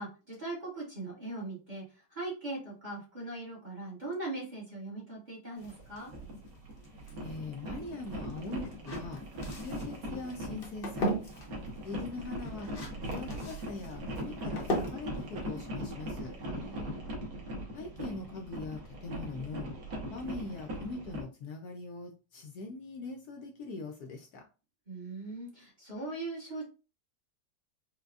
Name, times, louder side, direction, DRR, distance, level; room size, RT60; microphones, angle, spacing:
voice 1, 0.0-6.1 16.5-17.0 24.9-26.7, right 2 dB, 30° right, -6 dB, 1.1 m, -40 dB
sound 1, 5.6-16.4, right 1 dB, 45° left, 0.8 m, -40 dB
sound 2, 5.6-21.2, equal, 60° right, 1.4 m, -40 dB
voice 2, 7.2-9.2 9.6-11.1 11.8-12.7 13.0-16.4 17.7-19.7 20.1-24.4, left 3 dB, 70° left, 2 dB, 1.0 m, -42 dB
4.8 x 2.2 x 2.3 m, 0.33 s
omnidirectional pair, 1.9 m